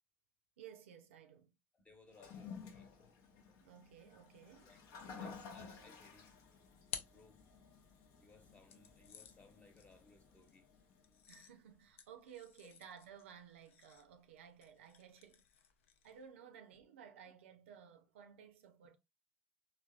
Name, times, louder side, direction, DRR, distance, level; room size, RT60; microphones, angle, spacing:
voice 1, 0.6-1.5 3.6-4.7 11.3-15.4 16.0-19.0, right 8 dB, 90° right, 0.4 m, -57 dB
voice 2, 1.7-2.9 4.6-4.8 5.1-6.3 7.1-7.4 8.2-10.7, left 3 dB, 20° left, 0.9 m, -64 dB
Toilet flush, 2.1-11.4, left 5 dB, 65° left, 0.7 m, -54 dB
sound 1, 6.4-8.0 8.7-16.3, left 9 dB, 90° left, 0.4 m, -55 dB
3.3 x 2.2 x 2.3 m
hypercardioid pair, 80°, 7 cm